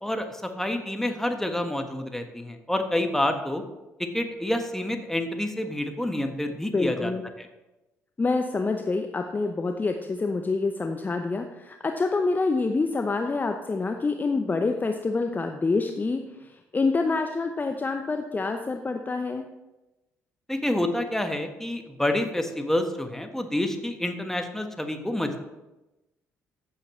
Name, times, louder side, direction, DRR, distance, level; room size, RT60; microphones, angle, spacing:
voice 1, 0.0-3.6 4.0-7.1 7.4-7.5 20.5-25.4, left 1 dB, 5° left, 5 dB, 1.4 m, -28 dB
voice 2, 6.7-7.2 8.2-19.5, left 3 dB, 25° left, 5 dB, 0.7 m, -27 dB
14.5 x 7.3 x 3.2 m, 1.0 s
figure-of-eight pair, 45°, 7 cm